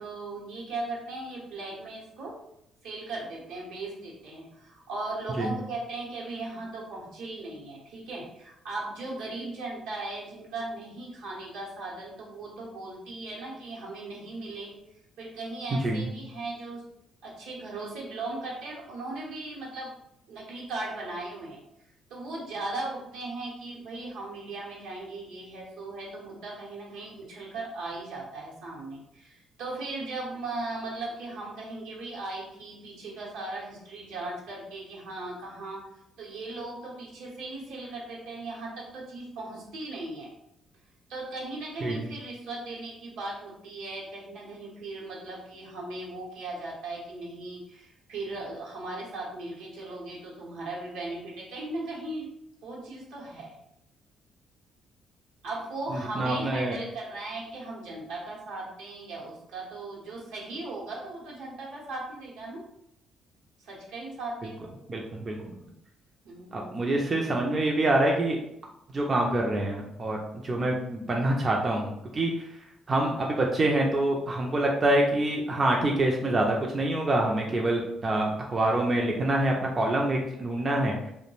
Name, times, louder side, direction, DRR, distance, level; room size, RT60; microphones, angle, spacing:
voice 1, 0.0-2.4 2.8-14.8 15.2-16.9 17.2-20.0 20.3-21.6 22.1-35.9 36.2-40.3 41.1-52.3 52.6-53.6 55.4-62.6 63.6-64.7 66.2-66.8 67.2-67.3, right 2 dB, 80° right, -4 dB, 0.8 m, -38 dB
voice 2, 56.2-56.7 64.9-65.5 66.5-68.4 68.9-70.2 70.4-72.3 72.9-80.9, right 1 dB, 40° right, 0 dB, 0.4 m, -26 dB
2.2 x 2.1 x 3.0 m, 0.81 s
supercardioid pair, 60°, 0 cm